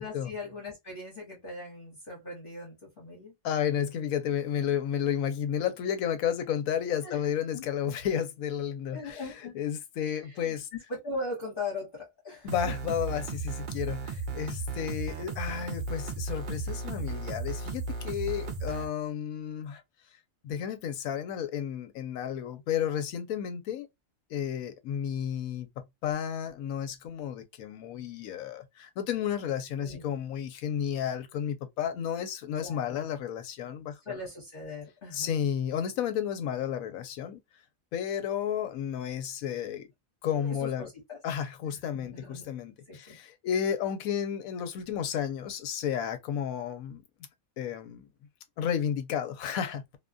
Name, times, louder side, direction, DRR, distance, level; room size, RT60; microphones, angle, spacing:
voice 1, 0.0-3.3 7.0-7.2 7.5-7.6 8.9-9.5 10.1-12.8 29.8-30.0 32.6-33.0 34.0-35.3 40.3-41.2 41.6-42.4 42.9-43.2, left 2 dB, 40° left, 1.2 m, -40 dB
voice 2, 3.4-9.2 9.5-10.7 12.4-19.8 20.4-23.9 24.3-34.2 35.1-37.4 37.9-39.9 40.2-40.9 41.2-47.0 47.6-48.1 48.6-50.0, left 9 dB, 85° left, 1.0 m, -32 dB
sound 1, 12.5-18.9, right 3 dB, 55° right, 0.5 m, -35 dB
2.5 x 2.2 x 2.4 m
omnidirectional pair, 1.4 m